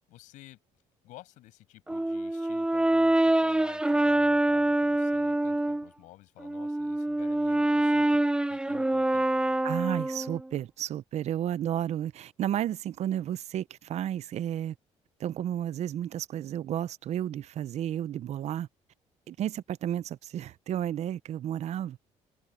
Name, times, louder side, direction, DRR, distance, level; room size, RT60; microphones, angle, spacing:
voice 1, 0.1-0.6 1.0-9.2, left 16 dB, 85° left, 7.0 m, -52 dB
Brass instrument, 1.9-5.9 6.4-10.5, right 1 dB, 5° right, 0.4 m, -25 dB
voice 2, 9.6-14.7 15.2-18.7 19.3-22.0, right 11 dB, 60° right, 0.6 m, -32 dB
cardioid pair, 85°, 13 cm